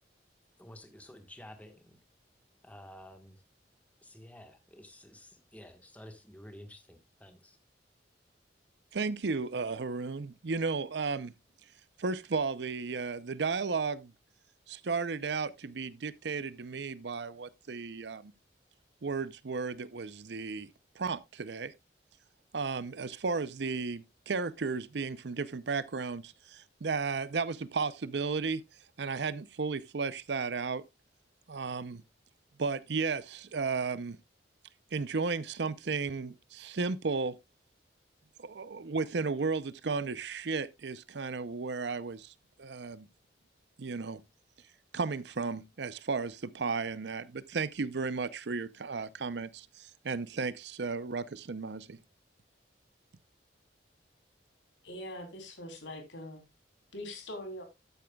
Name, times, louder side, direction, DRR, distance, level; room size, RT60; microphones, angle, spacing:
voice 1, 0.6-2.0 2.6-3.4 4.0-7.6, left 1 dB, 10° left, 1.4 m, -51 dB
voice 2, 8.9-11.3 12.0-14.1 14.7-18.3 19.0-20.7 21.0-21.7 22.5-28.6 29.0-30.8 31.5-32.0 32.6-34.2 34.9-37.4 38.4-42.3 42.6-43.1 43.8-44.2 44.9-52.0, right 4 dB, 70° right, 0.6 m, -34 dB
voice 3, 54.8-56.4 56.9-57.6, left 1 dB, 90° left, 3.2 m, -42 dB
12.5 x 9.0 x 2.3 m
head